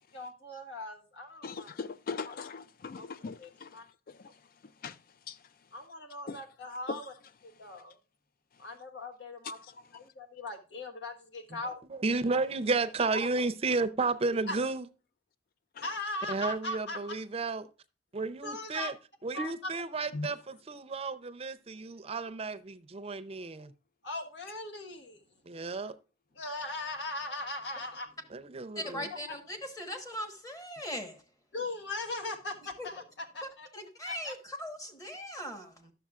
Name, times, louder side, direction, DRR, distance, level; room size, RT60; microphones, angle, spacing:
voice 1, 0.1-1.7 2.9-3.1 3.4-3.8 5.7-7.1 7.4-7.9 8.6-9.6 9.9-11.8 14.5-14.6 15.8-17.1 18.4-18.9 19.3-19.7 24.0-25.2 26.3-28.1 29.3-29.4 31.5-33.7 34.0-34.3, left 2 dB, 75° left, 1.4 m, -39 dB
voice 2, 1.4-3.8 4.1-4.3 4.8-5.0 5.3-5.4 6.3-6.4 6.9-7.0 15.8-15.9 20.1-20.3, left 4 dB, 55° left, 0.4 m, -39 dB
voice 3, 11.9-14.9 16.3-17.7 18.1-18.9 19.2-23.7 25.5-26.0 28.3-29.1, right 3 dB, 35° right, 0.5 m, -32 dB
voice 4, 28.7-31.2 32.8-32.9 33.7-35.9, equal, 20° left, 1.2 m, -39 dB
11.5 x 7.0 x 2.4 m
head